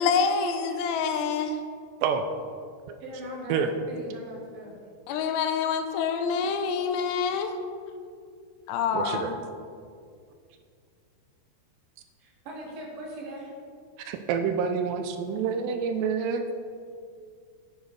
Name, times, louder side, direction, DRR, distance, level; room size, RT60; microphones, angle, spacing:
voice 1, 0.0-1.6 5.1-7.6 8.7-9.4, left 6 dB, 85° left, 7 dB, 2.6 m, -26 dB
voice 2, 3.0-4.8 12.2-13.5, equal, 65° right, -2 dB, 2.6 m, -40 dB
voice 3, 8.9-9.4 14.1-16.5, right 6 dB, 85° right, 7 dB, 2.5 m, -27 dB
9.8 x 9.2 x 3.2 m, 2.3 s
omnidirectional pair, 5.1 m